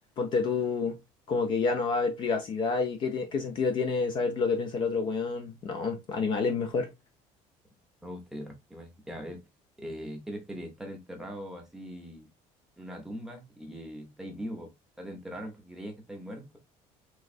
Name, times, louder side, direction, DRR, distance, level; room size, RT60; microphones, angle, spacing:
voice 1, 0.2-1.0 1.3-6.9, left 4 dB, 35° left, 0.5 m, -28 dB
voice 2, 8.0-9.4 9.8-12.3 12.8-14.7 15.0-16.6, equal, 5° right, 0.7 m, -41 dB
3.4 x 3.1 x 2.3 m
cardioid pair, 175°, 14 cm